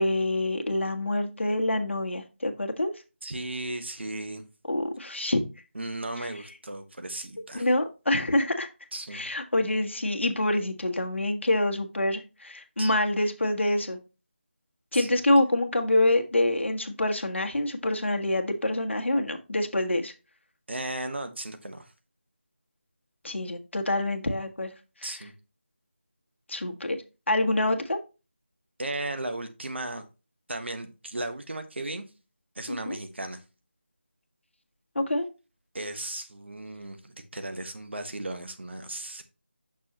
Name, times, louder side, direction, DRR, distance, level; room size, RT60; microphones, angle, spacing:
voice 1, 0.0-2.9 4.7-5.4 6.2-6.3 7.5-8.7 9.1-14.0 14.9-20.1 23.2-24.7 26.5-27.0 27.3-28.0 32.7-33.0 34.9-35.3, left 1 dB, 75° left, 4 dB, 1.3 m, -26 dB
voice 2, 3.2-4.4 5.7-7.7 8.9-9.2 12.8-12.9 14.9-15.2 20.7-21.9 25.0-25.3 28.8-30.0 30.5-32.0 32.5-33.4 35.7-39.2, right 2 dB, 65° right, 8 dB, 1.2 m, -35 dB
6.3 x 6.1 x 2.9 m, 0.30 s
figure-of-eight pair, 175°, 7 cm